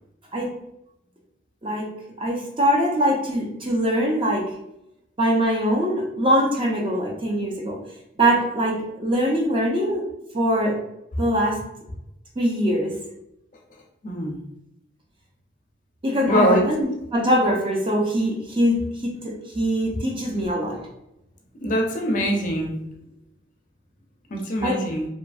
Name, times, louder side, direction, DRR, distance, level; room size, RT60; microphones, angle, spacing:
voice 1, 2.2-4.5 5.2-7.8 8.2-10.0 10.3-10.8 11.2-11.6 12.4-12.9 16.0-20.8 24.6-24.8, equal, 25° right, -1 dB, 0.5 m, -22 dB
voice 2, 14.0-14.4 16.2-16.6 21.6-22.7 24.3-25.1, equal, 40° left, 1 dB, 0.4 m, -22 dB
2.7 x 2.4 x 2.3 m, 0.84 s
head